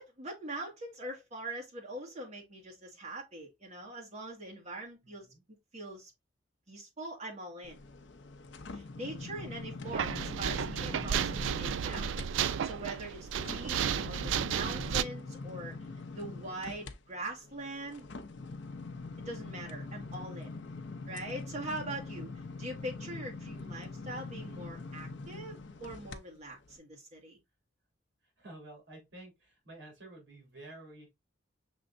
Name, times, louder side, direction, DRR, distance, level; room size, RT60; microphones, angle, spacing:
voice 1, 0.0-5.3 5.7-6.1 6.7-7.8 8.7-15.7 16.1-18.1 19.2-20.5 21.1-22.3 22.6-27.4, right 1 dB, 35° right, 1.8 m, -42 dB
voice 2, 5.0-5.4 28.2-31.1, right 2 dB, 65° right, 2.9 m, -51 dB
sound 1, 7.6-12.3 12.7-26.2 26.7-26.8, left 3 dB, 65° left, 0.6 m, -44 dB
sound 2, 9.9-15.0, right 8 dB, 85° right, 0.3 m, -33 dB
6.1 x 3.4 x 2.6 m
head